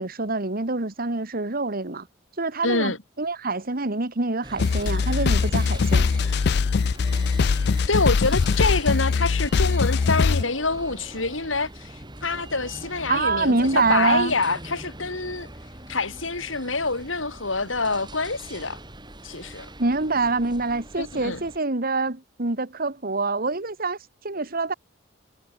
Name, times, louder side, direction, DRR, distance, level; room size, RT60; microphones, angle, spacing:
voice 1, 0.0-2.1 2.4-6.1 13.1-14.3 19.8-24.0 24.2-24.7, right 3 dB, 50° right, 2.0 m, -25 dB
voice 2, 2.6-3.0 7.9-11.9 12.2-15.5 15.9-18.8 19.2-19.7 21.0-21.4, left 3 dB, 90° left, 6.3 m, -26 dB
sound 1, 4.4-21.6, right 1 dB, 25° right, 6.4 m, -42 dB
sound 2, 4.6-10.4, left 5 dB, 60° left, 0.4 m, -21 dB
head